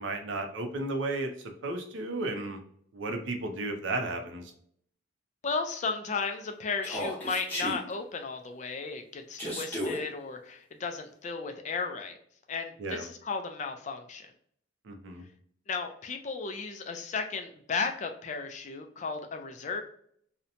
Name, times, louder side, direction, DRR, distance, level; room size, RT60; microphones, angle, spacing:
voice 1, 0.0-2.6 2.9-4.5 12.8-13.1 14.9-15.2, right 2 dB, 70° right, 5 dB, 0.5 m, -34 dB
voice 2, 5.4-12.2 12.5-14.3 15.7-19.8, left 4 dB, 35° left, 5 dB, 0.3 m, -34 dB
Human voice, 6.8-7.8 9.4-10.0, equal, 10° left, 0.9 m, -33 dB
2.7 x 2.1 x 2.5 m, 0.65 s
head